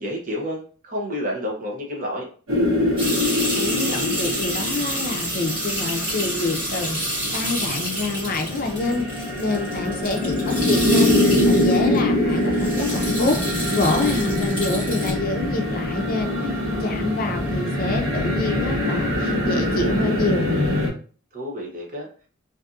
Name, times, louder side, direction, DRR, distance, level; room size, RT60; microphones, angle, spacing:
voice 1, 0.0-2.3 9.6-9.9 21.3-22.1, equal, 40° right, -1 dB, 0.7 m, -30 dB
sound 1, 2.5-20.9, left 1 dB, 85° right, 1.1 m, -24 dB
sound 2, 3.0-12.0 12.3-15.1, right 1 dB, 25° right, 1.2 m, -29 dB
voice 2, 3.4-7.0 7.3-13.4 13.7-20.5, left 3 dB, 45° left, 4 dB, 0.5 m, -27 dB
sound 3, 8.8-19.3, left 1 dB, ahead, 1.0 m, -42 dB
2.6 x 2.5 x 2.4 m, 0.41 s
head